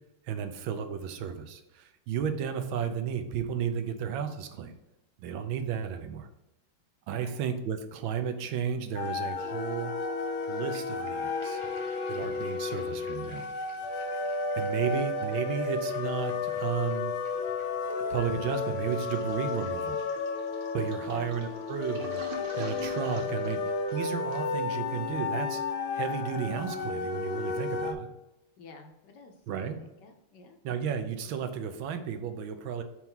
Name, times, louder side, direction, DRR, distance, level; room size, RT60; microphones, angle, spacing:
voice 1, 0.3-4.7 5.2-6.3 7.1-9.9 10.5-11.6 12.1-13.5 14.6-17.1 18.1-20.0 20.7-23.6 23.9-25.6 25.9-28.1 29.5-29.8 30.6-32.8, right 7 dB, 75° right, 7 dB, 1.4 m, -33 dB
sound 1, 9.0-27.9, left 4 dB, 85° left, 1.5 m, -33 dB
sound 2, 10.2-19.5, right 1 dB, 30° right, 0.5 m, -52 dB
Toilet flush, 18.9-24.6, right 4 dB, 60° right, 1.7 m, -45 dB
voice 2, 23.1-23.7 28.6-30.6, left 3 dB, 65° left, 5 dB, 1.2 m, -51 dB
4.6 x 4.5 x 5.4 m, 0.95 s
omnidirectional pair, 2.2 m